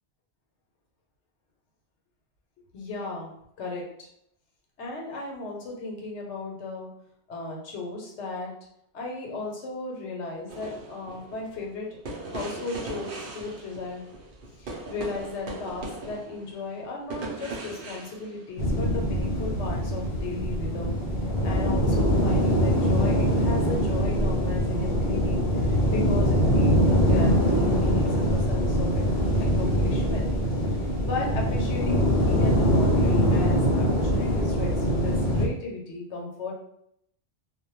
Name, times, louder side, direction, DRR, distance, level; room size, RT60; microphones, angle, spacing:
voice 1, 2.7-3.3 3.6-4.1 4.8-6.9 7.3-8.5 8.9-11.9 12.3-14.1 14.6-21.0 21.4-29.0 29.4-30.3 31.0-36.5, left 3 dB, 85° left, -1 dB, 1.0 m, -35 dB
sound 1, 10.5-18.9 19.7-19.8, right 2 dB, 60° right, 0.7 m, -39 dB
sound 2, 18.6-35.5, equal, 55° left, 0.5 m, -23 dB
2.2 x 2.1 x 2.9 m, 0.73 s
omnidirectional pair, 1.2 m